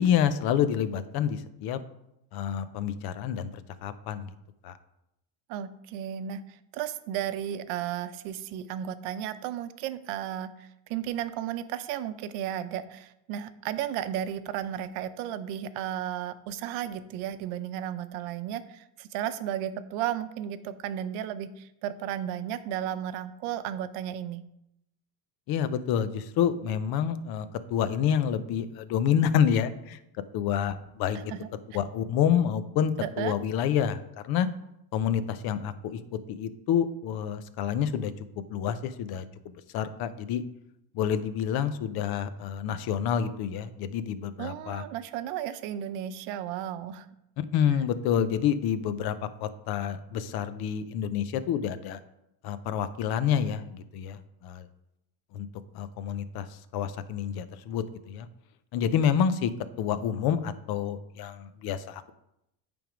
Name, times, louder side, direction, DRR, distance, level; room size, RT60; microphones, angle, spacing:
voice 1, 0.0-1.8 2.3-4.3 4.6-4.8 25.5-30.0 30.3-31.2 31.7-34.5 34.9-36.0 36.3-38.1 38.5-40.4 40.9-44.8 47.4-52.0 52.4-54.7 55.3-55.5 55.7-56.5 56.7-58.3 58.7-59.5 59.8-62.1, left 8 dB, 55° left, 13 dB, 0.6 m, -28 dB
voice 2, 5.5-24.4 31.3-31.5 33.0-33.3 44.4-47.1, right 10 dB, 80° right, 12 dB, 0.7 m, -34 dB
9.1 x 3.6 x 5.0 m, 0.82 s
cardioid pair, 135°, 46 cm